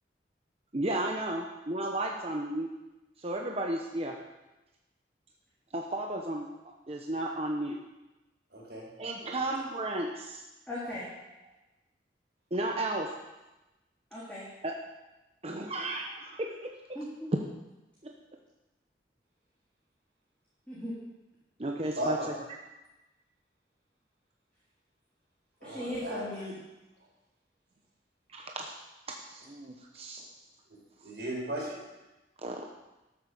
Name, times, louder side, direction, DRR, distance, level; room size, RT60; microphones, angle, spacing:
voice 1, 0.7-2.7 3.2-4.2 5.7-6.5 6.9-7.8 9.0-10.4 12.5-13.2 14.6-14.7 15.4-16.7 18.0-18.1 21.6-22.2 28.3-28.7 29.1-30.2 32.4-32.6, right 1 dB, 35° right, 1 dB, 1.0 m, -33 dB
voice 2, 8.5-8.8 9.2-9.5 21.8-22.3 25.6-26.3 27.0-27.1 30.7-30.8 31.0-31.8, right 1 dB, 70° right, -3 dB, 4.5 m, -36 dB
voice 3, 10.7-11.1 14.1-14.5 16.9-17.3 20.7-21.0 25.6-26.5, left 1 dB, 5° left, -9 dB, 3.2 m, -37 dB
12.5 x 7.7 x 6.8 m, 1.0 s
head